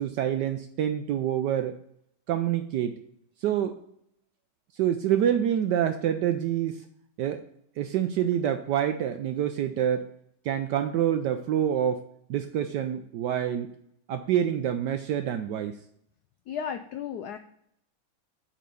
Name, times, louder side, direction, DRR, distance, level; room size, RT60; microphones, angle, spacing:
voice 1, 0.0-1.8 2.3-3.0 3.4-3.8 4.7-6.8 7.2-7.4 7.8-10.1 10.4-12.0 12.3-13.7 14.1-15.8, right 10 dB, 75° right, 7 dB, 1.0 m, -27 dB
voice 2, 16.5-17.4, left 8 dB, 85° left, 9 dB, 0.8 m, -34 dB
7.6 x 4.4 x 6.7 m, 0.71 s
omnidirectional pair, 2.3 m